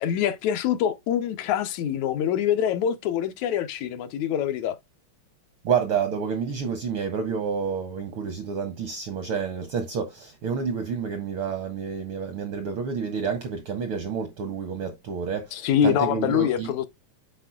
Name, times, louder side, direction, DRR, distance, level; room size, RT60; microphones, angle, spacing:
voice 1, 0.0-4.8 15.5-16.9, left 9 dB, 80° left, 2.0 m, -25 dB
voice 2, 5.6-16.7, right 6 dB, 75° right, 1.2 m, -29 dB
10.0 x 4.4 x 2.3 m
omnidirectional pair, 3.3 m